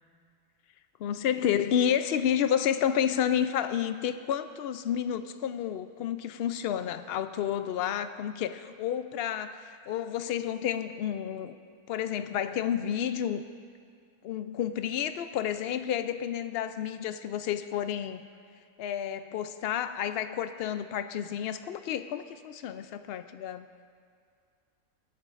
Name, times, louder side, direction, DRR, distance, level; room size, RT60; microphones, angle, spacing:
voice 1, 1.0-11.6 11.9-13.4 14.2-18.3 18.8-23.7, left 9 dB, 65° left, 10 dB, 0.6 m, -30 dB
24.0 x 8.9 x 2.5 m, 2.2 s
omnidirectional pair, 1.4 m